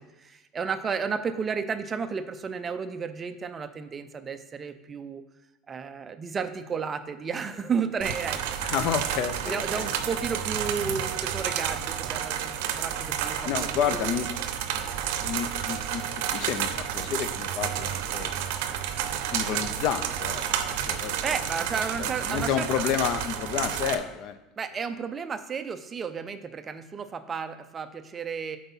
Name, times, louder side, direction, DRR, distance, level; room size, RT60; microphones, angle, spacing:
voice 1, 0.2-5.2 5.7-8.4 9.5-14.2 21.2-22.7 24.6-28.6, right 5 dB, 20° right, 10 dB, 0.4 m, -32 dB
sound 1, 8.0-23.9, right 9 dB, 75° right, 0.6 m, -30 dB
voice 2, 8.6-9.9 13.5-14.3 15.2-18.3 19.1-20.4 20.9-21.2 22.0-24.4, left 8 dB, 45° left, 12 dB, 0.5 m, -30 dB
7.9 x 4.6 x 5.5 m, 0.96 s
cardioid pair, 165°, 0 cm